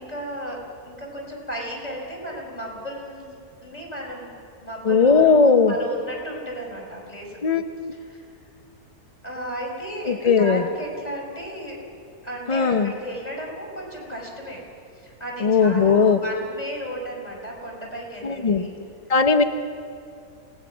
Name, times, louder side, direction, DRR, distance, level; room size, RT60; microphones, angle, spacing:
voice 1, 0.0-3.3 3.6-4.3 4.6-7.4 7.9-8.3 9.2-11.8 12.2-14.6 15.0-18.7, right 1 dB, 25° left, -2 dB, 5.2 m, -34 dB
voice 2, 4.8-5.7 7.4-7.6 10.1-10.6 12.5-12.9 15.4-16.2 18.2-18.7 19.1-19.4, left 5 dB, 50° left, 8 dB, 0.4 m, -18 dB
27.0 x 18.5 x 6.1 m, 2.6 s
omnidirectional pair, 1.7 m